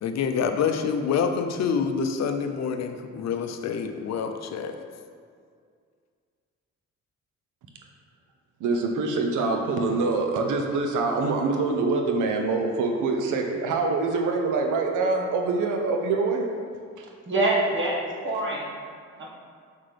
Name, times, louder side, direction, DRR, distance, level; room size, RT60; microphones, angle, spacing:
voice 1, 0.0-4.8, left 6 dB, 60° left, 7 dB, 0.6 m, -27 dB
voice 2, 8.6-16.5 17.0-17.1, right 3 dB, 85° right, 3 dB, 0.8 m, -25 dB
voice 3, 17.3-18.7 19.2-19.3, right 2 dB, 40° right, -3 dB, 1.5 m, -25 dB
6.4 x 5.7 x 3.4 m, 2.1 s
cardioid pair, 90°, 30 cm